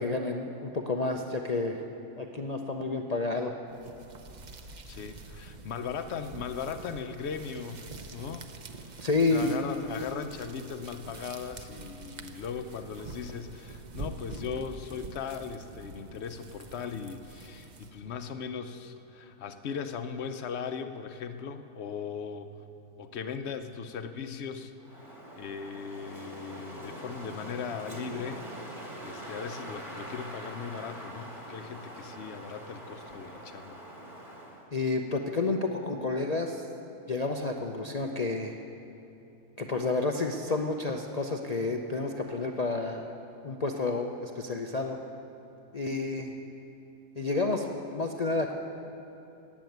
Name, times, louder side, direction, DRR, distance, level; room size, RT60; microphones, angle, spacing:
voice 1, 0.0-1.8 2.2-3.5 9.0-9.6 34.7-36.6 37.1-38.5 39.6-43.0 43.4-45.0 45.7-46.3 47.2-48.5, left 3 dB, 85° left, 2 dB, 0.3 m, -30 dB
sound 1, 3.7-18.1, right 3 dB, 45° right, 0.5 m, -46 dB
voice 2, 4.9-7.8 8.1-8.4 9.3-22.5 23.0-24.7 25.3-28.4 29.0-33.8, left 6 dB, 55° left, 9 dB, 0.8 m, -38 dB
Wind, 24.8-34.7, right 1 dB, 20° right, 1.7 m, -43 dB
14.5 x 8.8 x 9.3 m, 2.9 s
omnidirectional pair, 1.7 m